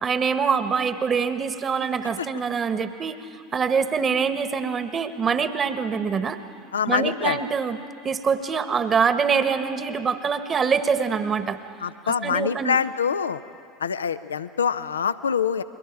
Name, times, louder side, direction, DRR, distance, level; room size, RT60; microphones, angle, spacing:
voice 1, 0.0-6.4 6.9-7.8 8.0-11.6 12.0-12.8, right 6 dB, 30° right, 10 dB, 1.3 m, -24 dB
voice 2, 6.7-7.4 11.8-13.4 13.8-15.6, left 7 dB, 80° left, 14 dB, 0.6 m, -25 dB
30.0 x 22.5 x 4.7 m, 2.3 s
figure-of-eight pair, 75°, 0 cm